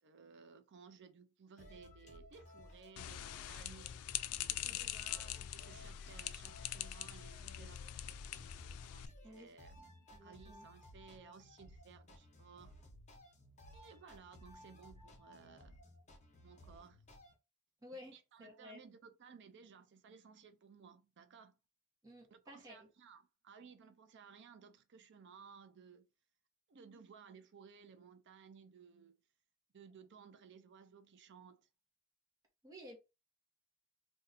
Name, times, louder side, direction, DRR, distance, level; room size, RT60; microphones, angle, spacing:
voice 1, 0.0-3.9 4.4-8.2 8.9-12.7 13.7-15.8 16.4-17.0 18.1-21.6 22.3-26.1 26.7-29.1 29.7-31.7, right 6 dB, 55° right, 0.5 m, -59 dB
sound 1, 1.6-17.3, left 1 dB, 35° left, 1.0 m, -58 dB
sound 2, 3.0-9.1, left 11 dB, 85° left, 0.3 m, -43 dB
voice 2, 10.1-10.7 17.8-18.8 22.0-22.9 32.6-33.0, left 1 dB, 15° right, 1.0 m, -54 dB
2.6 x 2.3 x 4.0 m
head